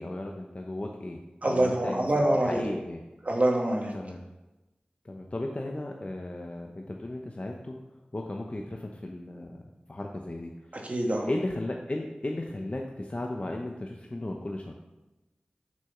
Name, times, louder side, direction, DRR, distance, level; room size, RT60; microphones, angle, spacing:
voice 1, 0.0-2.1 2.4-3.0 3.9-4.2 5.0-7.8 8.1-9.6 9.9-10.5 11.3-14.7, left 1 dB, 40° left, 1 dB, 0.9 m, -35 dB
voice 2, 1.4-2.6 3.2-3.9 10.7-11.3, right 1 dB, 50° right, 0 dB, 1.8 m, -25 dB
6.9 x 6.4 x 5.9 m, 1.0 s
cardioid pair, 40°, 3 cm